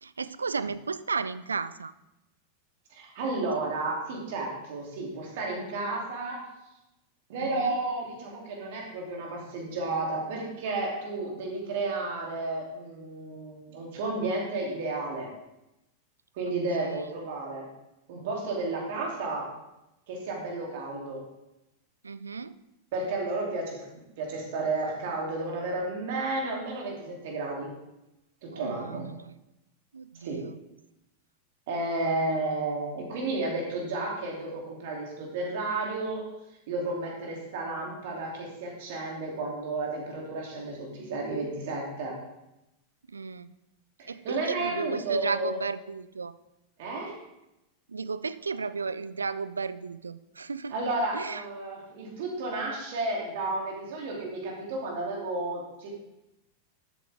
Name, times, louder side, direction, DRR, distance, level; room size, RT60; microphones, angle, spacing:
voice 1, 0.0-1.9 7.4-7.8 16.8-17.0 22.0-22.5 28.5-29.3 29.9-30.6 43.1-43.5 44.1-46.3 47.9-50.7 51.1-51.4, right 4 dB, 75° right, 16 dB, 0.4 m, -34 dB
voice 2, 2.9-6.4 7.3-15.3 16.3-17.7 18.1-19.5 20.1-21.2 22.9-23.8 24.2-27.7 28.4-29.1 30.2-30.4 31.7-36.2 36.7-42.2 44.0-45.6 46.8-47.1 50.7-55.9, right 2 dB, 55° right, -1 dB, 2.9 m, -32 dB
12.5 x 8.5 x 3.5 m, 0.92 s
figure-of-eight pair, 90°, 0 cm